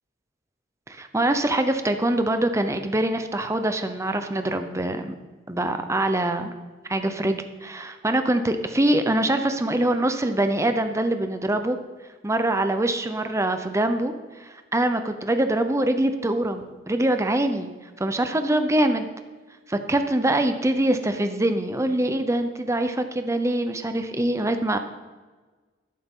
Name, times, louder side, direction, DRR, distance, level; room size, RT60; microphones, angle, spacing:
voice 1, 0.9-5.1 5.5-6.5 6.9-11.8 12.2-14.1 14.4-17.7 18.0-19.1 19.7-24.8, right 1 dB, 15° right, 7 dB, 0.7 m, -24 dB
13.0 x 11.5 x 3.8 m, 1.3 s
head